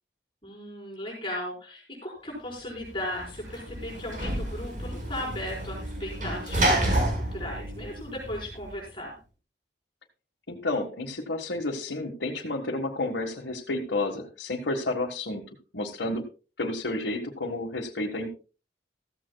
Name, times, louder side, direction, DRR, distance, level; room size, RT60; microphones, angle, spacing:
voice 1, 0.4-9.2, left 1 dB, 30° left, -2 dB, 4.8 m, -36 dB
Sliding door / Slam, 2.8-8.7, right 1 dB, 45° right, 5.0 m, -29 dB
voice 2, 10.5-15.4 15.7-16.2 16.6-18.3, left 2 dB, 85° left, -1 dB, 1.6 m, -31 dB
15.0 x 14.5 x 2.3 m, 0.35 s
head